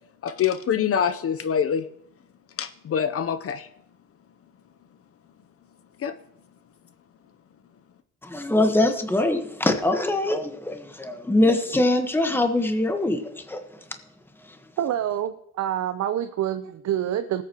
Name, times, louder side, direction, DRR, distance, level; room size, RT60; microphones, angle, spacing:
voice 1, 0.2-1.9 2.6-3.7 6.0-6.1, left 8 dB, 50° left, 12 dB, 0.6 m, -25 dB
voice 2, 8.2-13.8, left 1 dB, 5° left, 6 dB, 1.2 m, -23 dB
voice 3, 14.8-17.4, right 11 dB, 60° right, 9 dB, 0.7 m, -27 dB
19.5 x 8.5 x 2.9 m, 0.72 s
cardioid pair, 90°, 30 cm